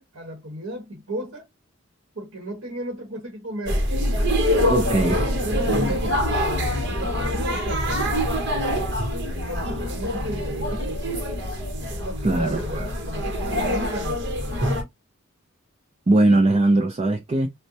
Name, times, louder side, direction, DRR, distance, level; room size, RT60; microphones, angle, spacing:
voice 1, 0.0-1.5 2.1-3.8 4.9-8.0 8.3-8.9 9.5-11.3 11.9-14.2, right 1 dB, 85° right, 1.3 m, -35 dB
sound 1, 3.7-14.8, equal, 60° right, 0.9 m, -25 dB
voice 2, 4.7-5.2 12.2-12.9 16.1-17.5, right 2 dB, 30° right, 0.4 m, -20 dB
4.3 x 2.2 x 2.6 m
head